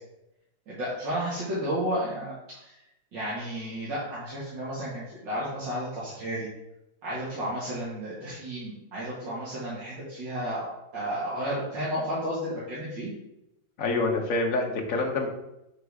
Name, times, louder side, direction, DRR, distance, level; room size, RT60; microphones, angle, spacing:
voice 1, 0.7-2.8 3.1-6.5 7.0-13.1, equal, 70° right, -9 dB, 2.6 m, -32 dB
voice 2, 13.8-15.3, left 3 dB, 50° left, 1 dB, 1.5 m, -26 dB
8.0 x 3.9 x 4.8 m, 0.89 s
omnidirectional pair, 2.0 m